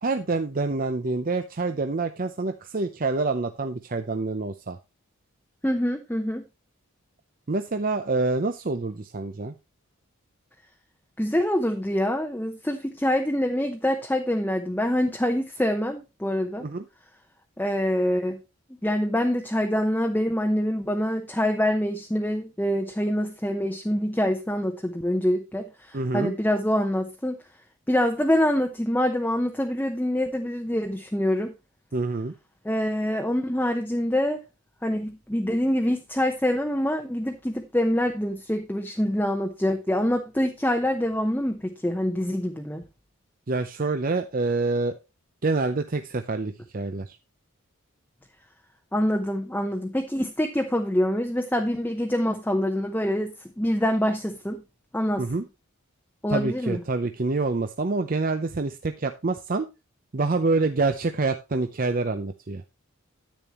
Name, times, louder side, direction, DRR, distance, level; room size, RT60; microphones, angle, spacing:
voice 1, 0.0-4.8 7.5-9.5 16.6-16.8 25.9-26.3 31.9-32.3 43.5-44.9 45.4-47.2 55.2-55.5 56.3-59.7 60.1-62.6, right 3 dB, 40° right, 7 dB, 0.6 m, -26 dB
voice 2, 5.6-6.4 11.2-16.7 17.6-18.4 18.8-27.4 27.9-31.5 32.6-34.4 34.8-42.8 48.9-54.6 54.9-55.2 56.2-56.8, equal, 10° left, 3 dB, 0.8 m, -25 dB
10.5 x 8.9 x 3.0 m, 0.25 s
head